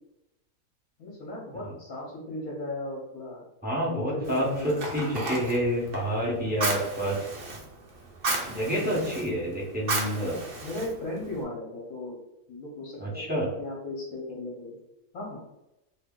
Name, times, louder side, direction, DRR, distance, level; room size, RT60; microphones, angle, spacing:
voice 1, 1.0-3.4 3.8-5.1 8.6-9.0 10.6-12.2 12.5-14.7 15.1-15.4, left 1 dB, 65° left, -4 dB, 1.3 m, -36 dB
voice 2, 3.6-7.2 8.5-10.4 13.0-13.5, equal, 10° right, -5 dB, 0.7 m, -28 dB
Fire, 4.2-11.4, right 3 dB, 45° right, 0.8 m, -34 dB
2.8 x 2.7 x 3.6 m, 0.89 s
omnidirectional pair, 1.6 m